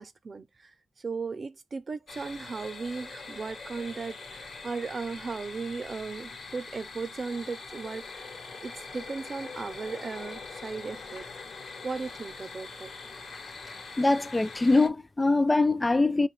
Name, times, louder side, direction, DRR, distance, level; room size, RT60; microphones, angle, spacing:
voice 1, 0.0-11.3 11.8-12.9, right 4 dB, 60° right, 0.5 m, -37 dB
sound 1, 2.1-14.9, left 4 dB, 85° left, 0.9 m, -43 dB
voice 2, 14.0-16.3, left 2 dB, 25° left, 0.3 m, -23 dB
6.1 x 2.3 x 3.1 m
cardioid pair, 75°, 0 cm